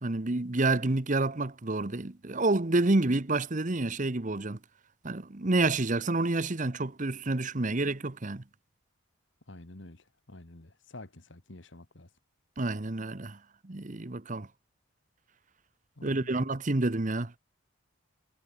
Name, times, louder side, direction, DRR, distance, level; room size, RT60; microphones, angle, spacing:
voice 1, 0.0-4.6 5.0-8.4 12.6-13.4 13.6-14.5 16.0-17.4, right 2 dB, 40° right, 1.0 m, -28 dB
voice 2, 9.5-12.1 16.0-16.5, left 2 dB, 60° left, 2.0 m, -49 dB
head